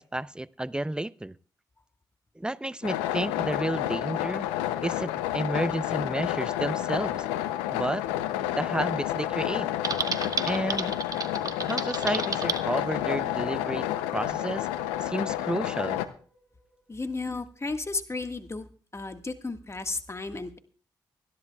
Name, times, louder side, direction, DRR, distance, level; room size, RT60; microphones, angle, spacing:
voice 1, 0.0-1.4 2.4-4.5 4.8-7.3 7.7-8.1 8.5-9.7 10.5-11.0 11.6-14.7 15.0-16.0, right 1 dB, 10° right, 0.6 m, -31 dB
sound 1, 2.8-16.1, left 12 dB, 90° left, 0.6 m, -30 dB
Typing, 9.8-12.6, right 4 dB, 40° right, 1.4 m, -31 dB
sound 2, 16.0-17.7, equal, 15° left, 6.9 m, -54 dB
voice 2, 16.9-18.7 18.9-20.6, left 3 dB, 30° left, 1.6 m, -33 dB
25.5 x 11.0 x 2.3 m
hypercardioid pair, 40°, 9 cm